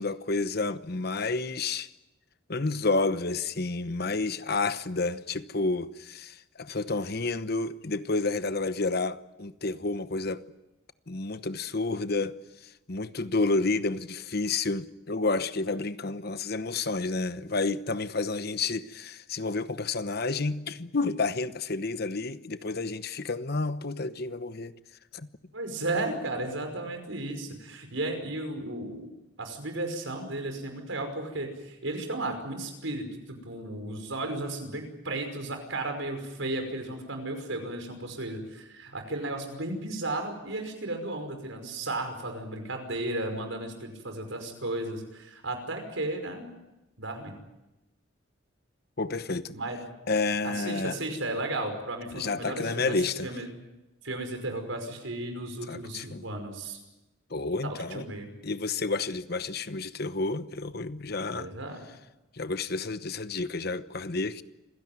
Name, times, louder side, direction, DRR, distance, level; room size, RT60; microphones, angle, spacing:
voice 1, 0.0-1.9 2.5-10.4 11.1-12.4 12.9-24.7 25.1-25.3 49.0-49.5 50.1-51.0 52.1-53.3 55.7-56.2 57.3-58.0 58.4-61.5 62.4-64.4, left 3 dB, 55° left, 1.0 m, -30 dB
voice 2, 25.5-29.1 29.4-46.5 47.0-47.4 49.5-49.8 50.4-53.5 54.0-56.8 57.6-58.3 61.3-61.8, right 2 dB, 85° right, 5.6 m, -34 dB
27.0 x 16.5 x 9.5 m
head